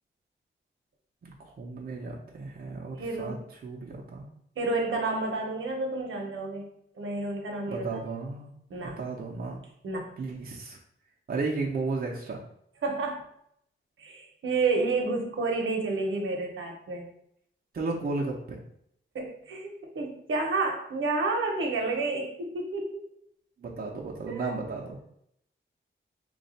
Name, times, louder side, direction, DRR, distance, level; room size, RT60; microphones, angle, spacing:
voice 1, 1.2-3.4 3.6-4.3 7.7-8.5 9.0-9.6 10.2-10.8 11.3-12.4 17.7-18.6 23.6-25.0, right 3 dB, 50° right, -2 dB, 0.6 m, -34 dB
voice 2, 2.9-3.5 4.6-6.7 7.0-7.8 8.7-9.0 9.8-10.1 12.8-13.2 14.0-17.0 19.1-23.1 24.3-24.5, right 3 dB, 85° right, 1 dB, 0.8 m, -30 dB
3.2 x 2.3 x 4.1 m, 0.72 s
wide cardioid pair, 170°, 20 cm